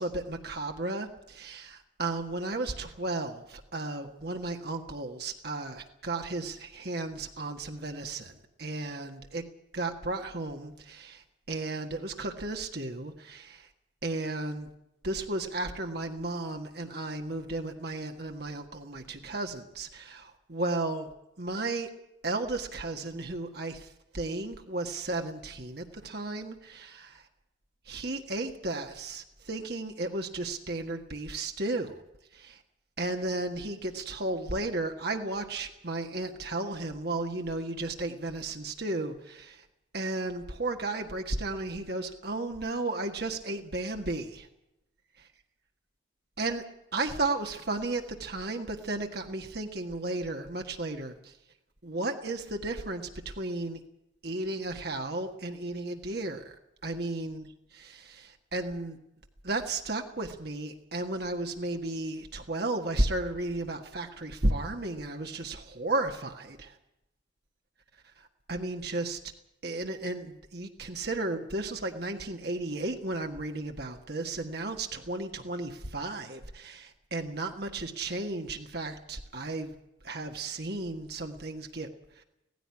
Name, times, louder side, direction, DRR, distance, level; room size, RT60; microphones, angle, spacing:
voice 1, 0.0-8.3 8.6-9.4 9.7-13.7 14.0-14.7 15.0-21.1 21.4-21.9 22.2-27.3 27.9-32.0 32.3-32.6 33.0-39.6 39.9-44.5 46.4-46.6 46.9-51.3 51.8-53.8 54.2-56.6 56.8-57.5 57.7-59.0 59.4-66.8 68.2-69.2 69.6-79.7 80.0-81.9 82.2-82.3, right 2 dB, 55° right, 4 dB, 1.7 m, -34 dB
17.5 x 15.5 x 9.8 m, 0.86 s
head